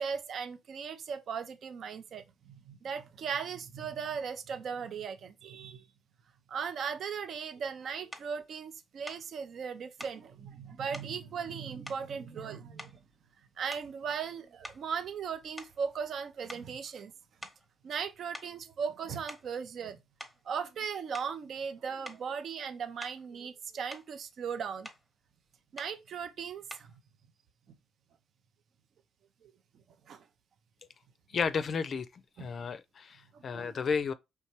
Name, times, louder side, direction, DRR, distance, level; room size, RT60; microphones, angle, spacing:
voice 1, 0.0-5.8 6.5-13.0 13.6-17.1 17.8-20.0 20.4-24.9 25.7-26.9 29.4-29.5 30.1-30.2 32.4-32.5 33.3-33.7, right 6 dB, 60° right, 0.5 m, -38 dB
sound 1, 8.1-8.3 9.1-9.3 10.0-10.2 10.9-11.2 11.9-12.5 12.8-13.2 13.7-14.0 14.6-16.2 16.5-16.7 17.4-17.7 18.3-18.6 19.1-19.6 20.2-20.4 21.1-21.4 22.0-22.3 23.0-23.3 23.7-24.1 24.8-25.1 25.8-26.0 26.7-27.0, left 1 dB, 5° left, 0.8 m, -47 dB
voice 2, 31.3-32.1 32.4-34.1, left 5 dB, 50° left, 0.4 m, -32 dB
4.5 x 3.4 x 2.9 m
cardioid pair, 90°, 0 cm